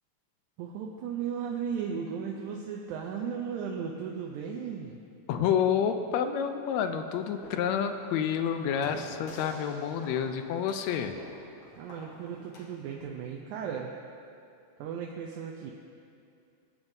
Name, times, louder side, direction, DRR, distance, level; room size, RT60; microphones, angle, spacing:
voice 1, 0.6-5.0 11.8-13.9 14.8-15.7, right 7 dB, 90° right, 0 dB, 2.2 m, -36 dB
voice 2, 5.3-11.1, left 8 dB, 80° left, 7 dB, 1.8 m, -29 dB
sound 1, 7.1-13.0, left 2 dB, 55° left, 1.6 m, -49 dB
20.5 x 8.9 x 2.7 m, 2.5 s
omnidirectional pair, 3.4 m